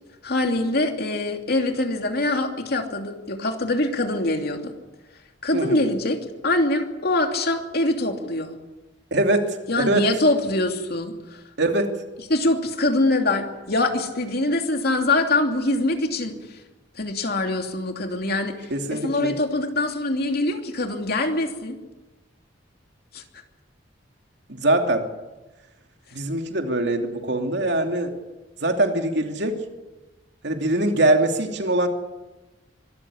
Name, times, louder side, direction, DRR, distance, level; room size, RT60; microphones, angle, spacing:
voice 1, 0.2-4.7 5.4-6.2 6.4-8.6 9.7-11.4 12.3-16.4 17.0-21.8 23.1-23.2, left 2 dB, 55° left, 4 dB, 2.8 m, -24 dB
voice 2, 9.1-10.0 11.6-11.9 18.7-19.4 24.5-25.0 26.1-28.1 28.6-29.6 30.4-31.9, right 1 dB, 65° right, 4 dB, 2.9 m, -22 dB
24.5 x 14.0 x 9.9 m, 1.1 s
head